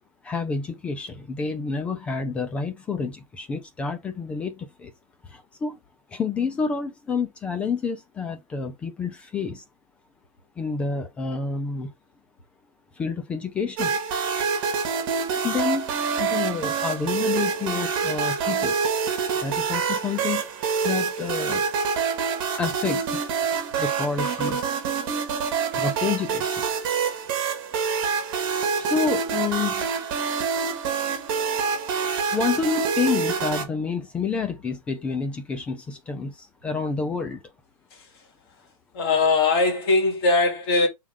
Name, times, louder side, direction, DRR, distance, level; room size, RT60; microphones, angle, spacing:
voice 1, 0.2-4.9 5.2-5.8 6.1-9.6 10.6-11.9 13.0-14.0 15.3-15.9 16.2-18.9 19.4-20.4 20.8-21.7 22.6-23.2 23.8-24.6 25.7-26.6 28.8-29.9 32.3-37.4, left 5 dB, 5° left, 0.3 m, -29 dB
sound 1, 13.8-33.6, right 6 dB, 35° right, 1.9 m, -26 dB
voice 2, 38.9-40.9, left 3 dB, 35° left, 2.5 m, -21 dB
7.3 x 3.7 x 3.6 m
hypercardioid pair, 165°, 19 cm